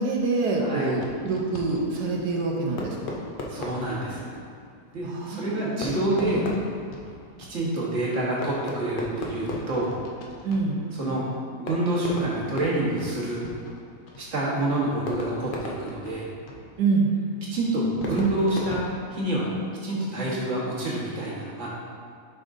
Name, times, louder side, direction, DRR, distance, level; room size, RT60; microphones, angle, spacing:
voice 1, 0.0-3.1 5.0-5.9 6.2-6.4 10.4-10.8 16.8-17.1, right 3 dB, 75° right, -1 dB, 1.2 m, -26 dB
voice 2, 0.6-0.9 3.5-4.3 4.9-6.4 7.5-9.9 11.0-11.2 11.6-13.5 14.2-16.3 17.5-18.8 19.1-19.6 19.8-21.7, right 1 dB, 50° right, -5 dB, 1.4 m, -27 dB
Fireworks, 0.9-19.7, left 2 dB, 75° left, 0.4 m, -39 dB
7.1 x 5.1 x 2.6 m, 2.2 s
omnidirectional pair, 1.8 m